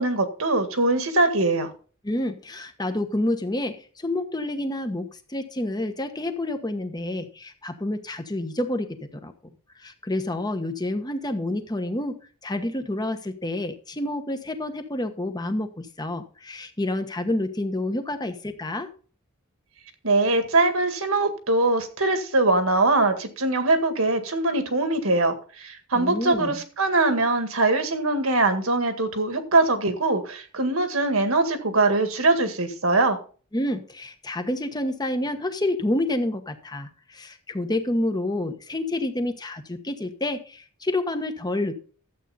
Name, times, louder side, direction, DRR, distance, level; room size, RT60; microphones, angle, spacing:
voice 1, 0.0-1.7 20.0-33.2, right 2 dB, 70° right, 7 dB, 1.9 m, -22 dB
voice 2, 2.0-9.3 9.8-12.2 12.4-18.9 25.9-26.6 33.5-41.7, left 1 dB, 20° left, 8 dB, 1.2 m, -28 dB
12.0 x 8.1 x 4.1 m, 0.40 s
head